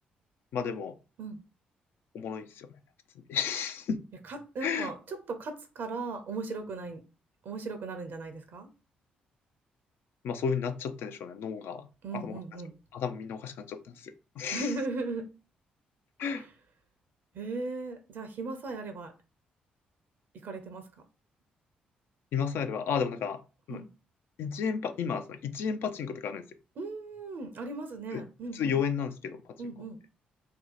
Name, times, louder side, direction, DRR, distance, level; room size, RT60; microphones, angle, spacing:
voice 1, 0.5-1.0 2.1-2.7 3.2-4.0 4.6-4.9 10.2-12.4 12.9-14.7 16.2-16.4 22.3-23.4 23.7-23.8 24.4-26.4 28.1-28.2 28.5-29.6, left 6 dB, 65° left, 0.4 m, -33 dB
voice 2, 4.2-7.0 7.4-8.7 12.0-12.8 14.5-15.3 16.4-16.5 17.3-19.1 20.4-20.9 23.7-23.9 26.8-28.7 29.6-30.0, right 3 dB, 60° right, 0.5 m, -37 dB
2.7 x 2.1 x 4.0 m
hypercardioid pair, 45°, 4 cm